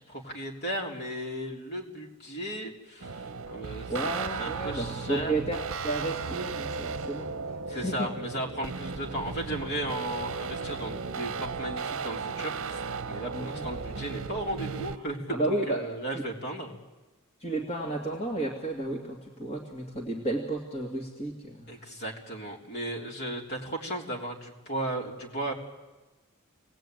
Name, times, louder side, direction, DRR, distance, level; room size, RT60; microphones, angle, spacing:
voice 1, 0.1-3.9 4.4-5.3 7.7-16.7 21.7-25.5, right 1 dB, 50° left, 0 dB, 3.6 m, -35 dB
sound 1, 3.0-15.0, right 4 dB, 60° right, 0.8 m, -36 dB
voice 2, 3.9-8.1 13.3-13.6 15.3-15.9 16.1-16.2 17.4-21.9, right 2 dB, 30° left, 0 dB, 2.4 m, -32 dB
27.0 x 19.0 x 9.1 m, 1.2 s
head